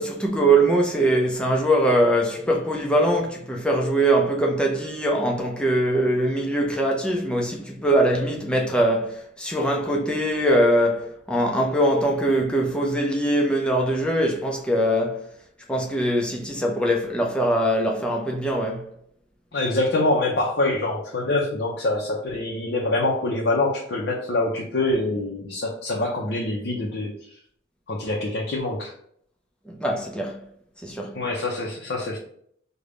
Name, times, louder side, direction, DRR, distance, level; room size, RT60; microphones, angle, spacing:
voice 1, 0.0-15.2 15.7-18.9 29.7-30.4 30.8-31.1, right 1 dB, 5° left, 0.5 m, -22 dB
voice 2, 19.5-27.4 27.9-28.9 31.1-32.2, left 2 dB, 65° left, 0.5 m, -25 dB
3.4 x 2.2 x 3.7 m
head